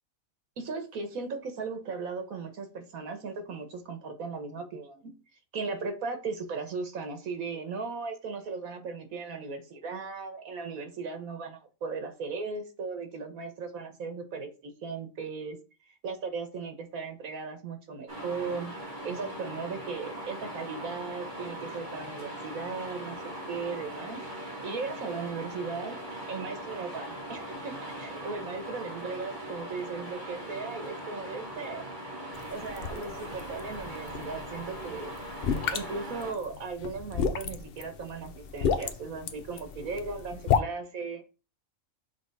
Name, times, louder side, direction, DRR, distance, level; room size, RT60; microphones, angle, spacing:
voice 1, 0.6-5.2 5.5-15.6 16.0-18.7 19.0-24.2 24.6-26.0 26.3-31.8 32.5-35.1 35.7-41.2, right 4 dB, 85° right, 7 dB, 1.6 m, -37 dB
sound 1, 18.1-36.3, right 1 dB, 35° right, 2.2 m, -40 dB
sound 2, 32.3-40.6, left 6 dB, 55° left, 0.7 m, -33 dB
6.1 x 3.4 x 4.6 m, 0.32 s
omnidirectional pair, 1.4 m